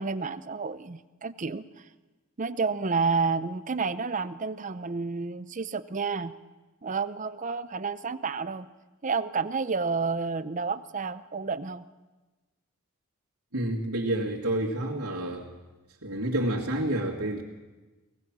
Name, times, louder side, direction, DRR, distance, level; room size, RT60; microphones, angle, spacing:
voice 1, 0.0-1.6 2.4-6.3 6.8-8.7 9.0-11.8, right 4 dB, 35° right, 13 dB, 0.6 m, -30 dB
voice 2, 13.5-15.5 16.0-17.4, right 1 dB, 85° right, -5 dB, 2.2 m, -29 dB
23.5 x 18.0 x 6.2 m, 1.2 s
head